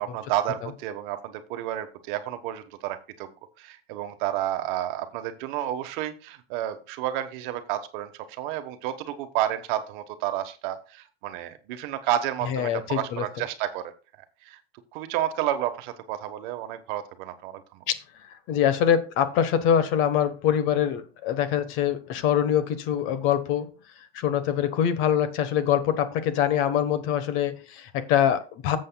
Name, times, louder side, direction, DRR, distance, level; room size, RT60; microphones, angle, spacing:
voice 1, 0.0-3.3 3.6-13.9 14.4-14.6 14.9-17.8, right 12 dB, 55° right, 9 dB, 1.2 m, -31 dB
voice 2, 12.5-13.2 17.9-18.0 18.5-23.7 24.1-28.8, left 9 dB, 45° left, 12 dB, 1.1 m, -24 dB
14.0 x 7.7 x 2.3 m, 0.34 s
supercardioid pair, 155°, 30 cm